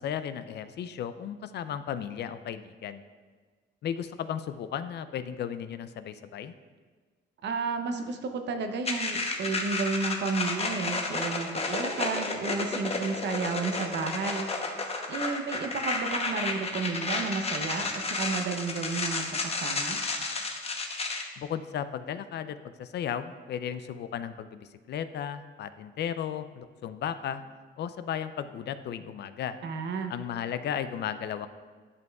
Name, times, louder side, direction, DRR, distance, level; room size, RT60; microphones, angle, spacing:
voice 1, 0.0-3.0 3.8-6.5 21.4-27.4 27.8-29.6 30.1-31.5, left 9 dB, 60° left, 12 dB, 0.4 m, -35 dB
voice 2, 7.4-14.5 15.1-20.0 29.6-30.1, right 4 dB, 60° right, 6 dB, 0.7 m, -32 dB
sound 1, 8.8-21.2, left 3 dB, 30° left, 0.8 m, -32 dB
10.5 x 5.3 x 2.3 m, 1.4 s
cardioid pair, 90°, 20 cm